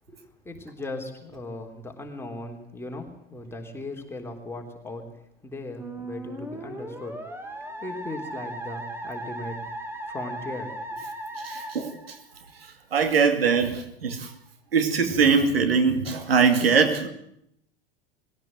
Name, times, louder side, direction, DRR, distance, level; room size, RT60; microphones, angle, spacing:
voice 1, 0.1-5.1 5.4-7.2 7.5-9.6 10.1-11.0, left 2 dB, 10° left, 2 dB, 3.7 m, -38 dB
Musical instrument, 5.8-12.7, right 1 dB, 10° right, 2.8 m, -37 dB
voice 2, 11.4-12.2 12.9-14.3 14.7-17.1, right 5 dB, 70° right, 6 dB, 2.6 m, -22 dB
21.0 x 16.5 x 7.7 m, 0.73 s
figure-of-eight pair, 85°, 30 cm